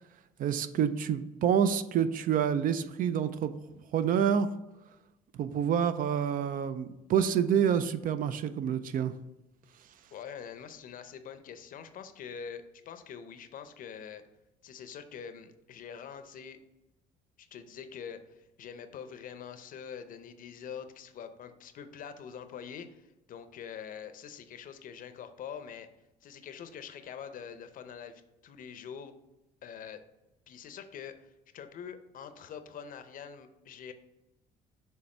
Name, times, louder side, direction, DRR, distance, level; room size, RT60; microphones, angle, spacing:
voice 1, 0.4-4.5 5.4-9.1, right 8 dB, 55° right, 12 dB, 0.4 m, -28 dB
voice 2, 10.1-14.2 14.6-16.6 17.4-25.9 26.2-29.1 29.6-30.0 30.5-33.9, left 7 dB, 55° left, 10 dB, 0.6 m, -45 dB
6.5 x 3.5 x 4.3 m, 0.98 s
cardioid pair, 110°, 17 cm